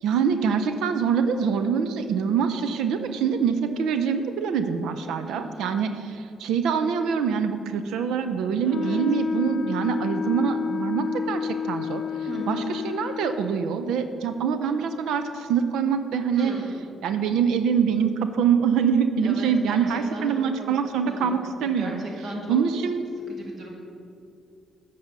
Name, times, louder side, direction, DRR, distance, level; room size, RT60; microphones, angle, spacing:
voice 1, 0.0-12.0 12.5-16.6 17.0-22.0 22.5-23.0, right 7 dB, 85° right, 9 dB, 0.5 m, -24 dB
voice 2, 5.2-5.7 8.6-9.0 12.3-12.6 16.3-16.9 19.2-20.7 21.0-21.4 21.6-22.6 23.3-23.7, right 1 dB, 55° right, -1 dB, 2.0 m, -36 dB
Wind instrument woodwind instrument, 8.7-13.6, left 6 dB, 60° left, 0.4 m, -30 dB
8.0 x 4.9 x 6.7 m, 2.5 s
cardioid pair, 90°, 0 cm